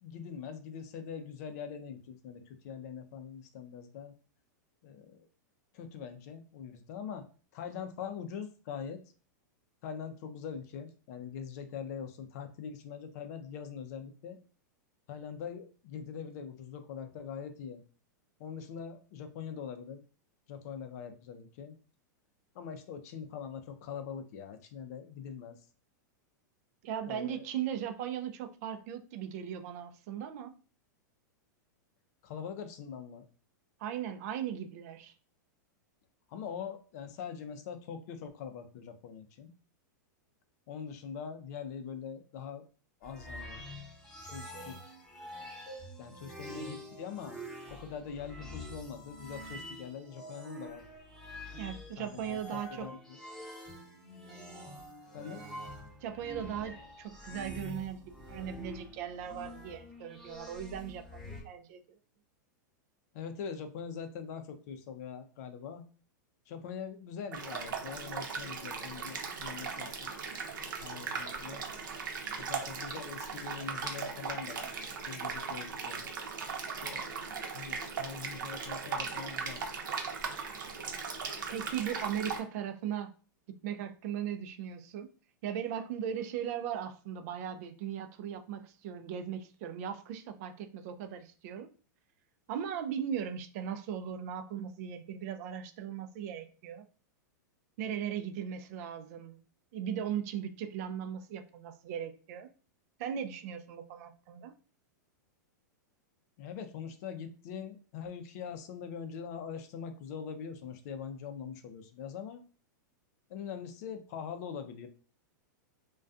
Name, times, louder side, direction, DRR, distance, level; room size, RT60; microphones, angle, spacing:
voice 1, 0.0-4.1 4.8-5.3 5.7-7.3 7.5-9.0 9.8-14.4 15.1-17.8 18.4-20.0 20.5-21.7 22.5-25.6 27.1-27.5 32.2-33.3 36.3-39.5 40.7-42.6 43.0-43.6 44.2-45.0 46.0-47.4 47.7-50.8 52.0-53.2 55.1-55.4 63.1-65.8 66.5-70.1 70.6-71.6 72.4-74.7 75.1-76.1 76.6-79.6 106.4-112.4 113.3-114.9, left 7 dB, 55° left, 0.5 m, -43 dB
voice 2, 26.8-30.5 33.8-35.1 51.6-52.9 56.0-61.8 81.5-83.1 83.6-85.1 85.4-91.7 92.5-96.8 97.8-99.4 99.7-102.5 103.0-104.5, right 9 dB, 55° right, 0.4 m, -38 dB
sound 1, 43.0-61.4, equal, 5° left, 0.8 m, -46 dB
sound 2, 67.3-82.4, right 5 dB, 85° right, 0.7 m, -38 dB
2.3 x 2.2 x 2.5 m
hypercardioid pair, 130°, 10 cm